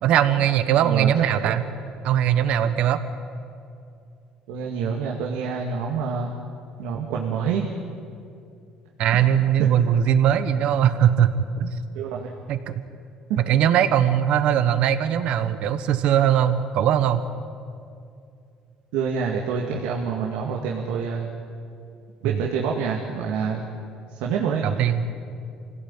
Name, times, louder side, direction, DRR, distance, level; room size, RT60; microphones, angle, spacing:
voice 1, 0.0-1.6 2.0-3.0 9.0-11.7 12.5-12.7 13.5-17.2 22.2-22.4 24.6-25.1, right 10 dB, 65° right, 11 dB, 1.4 m, -20 dB
voice 2, 0.8-1.1 1.4-1.6 4.5-6.3 6.8-7.7 9.1-9.2 9.6-9.7 11.9-12.3 13.3-13.4 18.9-21.3 22.2-23.7 24.1-24.6, right 6 dB, 90° right, -1 dB, 2.2 m, -27 dB
25.5 x 16.5 x 9.0 m, 2.4 s
cardioid pair, 115°, 2 cm